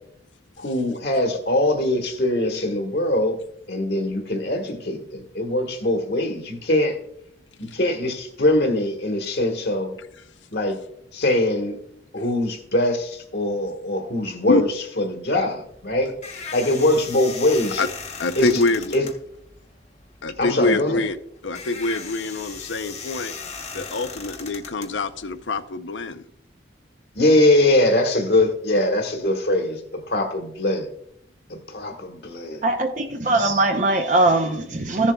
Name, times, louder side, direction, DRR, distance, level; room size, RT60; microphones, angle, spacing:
voice 1, 0.6-3.4 3.7-7.0 7.6-9.9 10.5-10.8 11.1-11.7 12.1-17.8 18.4-18.6 18.9-19.0 20.4-21.0 27.1-30.9 31.5-32.6, left 1 dB, 60° left, 1.4 m, -22 dB
sound 1, 15.6-25.6, left 5 dB, 35° left, 1.0 m, -38 dB
voice 2, 18.2-18.9 20.2-21.1 21.4-23.3 23.7-26.2, left 2 dB, 85° left, 0.6 m, -25 dB
voice 3, 32.6-35.1, right 2 dB, 40° right, 0.7 m, -20 dB
14.5 x 7.2 x 2.3 m
head